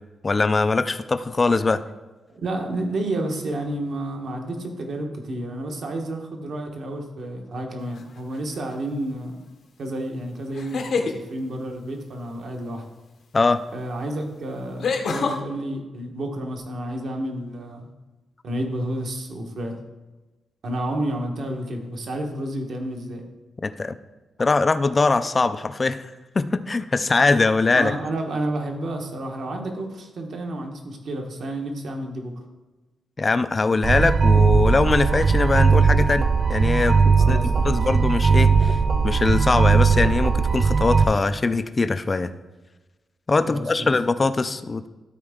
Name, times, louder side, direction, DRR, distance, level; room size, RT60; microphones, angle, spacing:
voice 1, 0.2-1.8 13.3-13.6 23.6-24.0 24.4-26.1 26.4-27.9 33.2-42.3 43.3-44.9, left 3 dB, 25° left, 11 dB, 0.3 m, -22 dB
voice 2, 2.3-9.4 9.8-12.9 13.7-17.9 18.4-19.8 20.6-23.2 27.7-32.3 37.2-37.8 43.4-43.9, right 1 dB, 55° right, 2 dB, 1.2 m, -30 dB
sound 1, 7.9-8.4 10.5-11.2 13.4-13.5 14.8-15.4, left 4 dB, 60° left, 0.8 m, -25 dB
sound 2, 33.8-41.0, right 5 dB, 40° right, 0.4 m, -18 dB
12.5 x 4.4 x 3.7 m, 1.2 s
wide cardioid pair, 155°, 0 cm